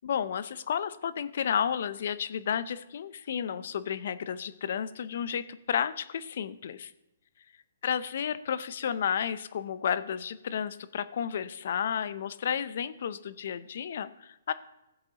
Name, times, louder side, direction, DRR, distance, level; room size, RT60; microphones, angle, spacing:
voice 1, 0.0-6.9 7.8-14.5, left 8 dB, 60° left, 14 dB, 0.6 m, -32 dB
16.0 x 7.8 x 2.9 m, 0.90 s
hypercardioid pair, 140°, 0 cm